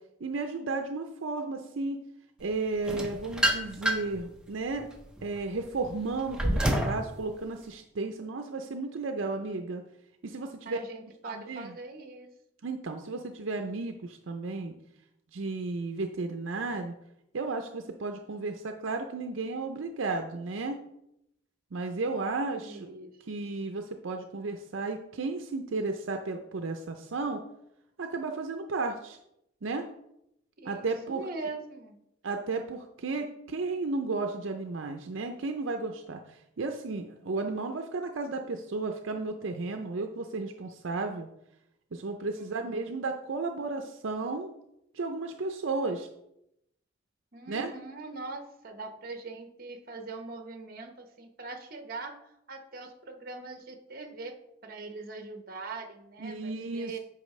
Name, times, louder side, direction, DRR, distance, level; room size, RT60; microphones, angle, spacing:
voice 1, 0.2-2.0 2.4-4.9 5.2-9.8 10.2-10.8 11.2-11.7 12.6-14.7 15.3-16.9 17.3-20.8 21.7-22.9 23.2-27.4 28.0-29.2 29.6-29.9 30.6-31.3 32.2-41.3 41.9-44.5 44.9-46.1 47.5-47.7 56.2-56.9, right 3 dB, 70° right, 5 dB, 0.5 m, -33 dB
sound 1, 2.9-4.2 4.7-7.0, right 1 dB, 5° right, 0.7 m, -28 dB
voice 2, 10.6-12.3 22.6-23.2 30.6-32.0 42.4-42.8 47.3-52.2 52.5-54.3 54.6-57.0, right 3 dB, 45° right, 6 dB, 0.9 m, -42 dB
8.5 x 5.4 x 3.2 m, 0.81 s
head